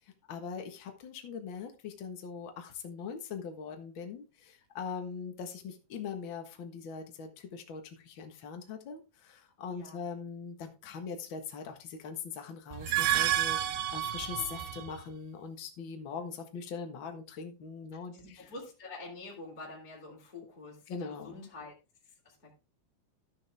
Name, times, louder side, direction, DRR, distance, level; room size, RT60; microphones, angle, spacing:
voice 1, 0.3-18.4 20.9-21.5, left 6 dB, 55° left, 5 dB, 1.3 m, -41 dB
voice 2, 9.7-10.0 18.1-21.7 22.0-22.5, left 2 dB, 15° left, -4 dB, 2.5 m, -47 dB
sound 1, 12.7-15.0, right 13 dB, 85° right, 2.8 m, -30 dB
13.5 x 6.4 x 3.4 m, 0.29 s
omnidirectional pair, 4.5 m